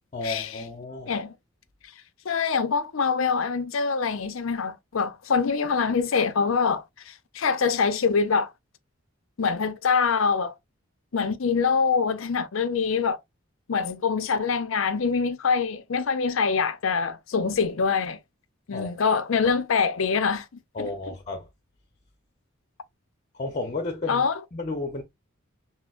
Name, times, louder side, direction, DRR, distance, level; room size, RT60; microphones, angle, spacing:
voice 1, 0.1-1.1 18.7-18.9 20.7-21.5 23.3-25.0, left 3 dB, 35° left, 0.8 m, -33 dB
voice 2, 2.2-8.5 9.4-10.6 11.1-13.2 13.7-18.2 18.7-20.5 20.8-20.9 24.1-24.3, left 5 dB, 70° left, 0.6 m, -24 dB
6.0 x 2.1 x 2.4 m
head